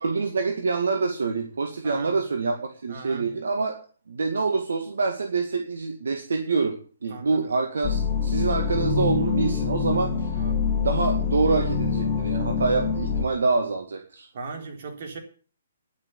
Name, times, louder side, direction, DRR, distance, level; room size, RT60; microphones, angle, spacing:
voice 1, 0.0-3.8 4.1-6.8 7.0-10.4 10.8-14.3, right 4 dB, 75° right, 2.1 m, -26 dB
voice 2, 1.8-2.2 2.9-3.3 7.1-7.5 10.3-10.7 14.3-15.2, right 2 dB, 55° right, 3.9 m, -37 dB
sound 1, 7.8-13.3, left 6 dB, 20° left, 2.3 m, -25 dB
11.0 x 8.9 x 8.4 m
hypercardioid pair, 140°, 0 cm